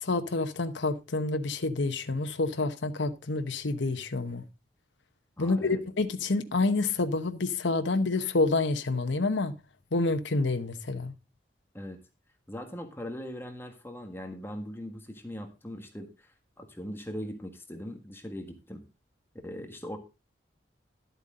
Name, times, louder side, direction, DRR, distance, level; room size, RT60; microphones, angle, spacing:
voice 1, 0.0-4.4 5.4-9.6 9.9-11.1, left 3 dB, 80° left, 1.0 m, -28 dB
voice 2, 5.4-5.8 11.7-12.0 12.5-18.8 19.4-20.0, equal, 10° left, 1.6 m, -40 dB
12.0 x 8.1 x 3.8 m
head